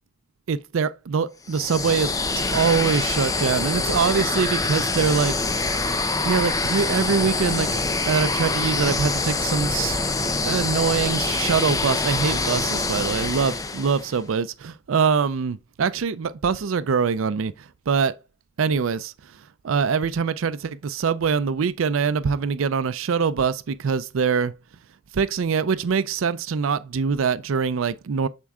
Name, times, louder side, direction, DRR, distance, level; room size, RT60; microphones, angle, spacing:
voice 1, 0.5-5.4 6.2-7.7 8.0-10.0 10.4-18.2 18.6-24.5 25.1-28.3, right 6 dB, 85° right, 0.4 m, -24 dB
sound 1, 1.5-14.2, left 3 dB, 15° left, 0.6 m, -25 dB
7.2 x 4.4 x 3.6 m
head